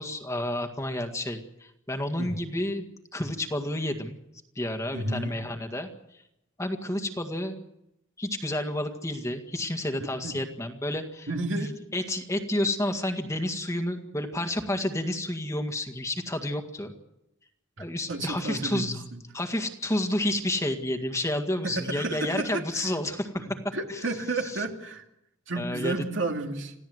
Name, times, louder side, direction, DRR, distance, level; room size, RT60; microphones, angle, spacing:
voice 1, 0.0-2.9 3.1-4.2 4.6-5.9 6.6-7.5 8.2-11.3 11.6-16.9 17.8-19.0 19.3-24.0 24.4-24.6 25.6-26.0, left 1 dB, 15° left, 6 dB, 1.8 m, -30 dB
voice 2, 4.9-5.3 10.2-10.4 11.3-11.7 17.8-19.2 21.6-22.8 23.7-25.0 25.5-26.7, right 2 dB, 70° right, 3 dB, 2.6 m, -31 dB
27.0 x 16.0 x 8.0 m, 0.86 s
head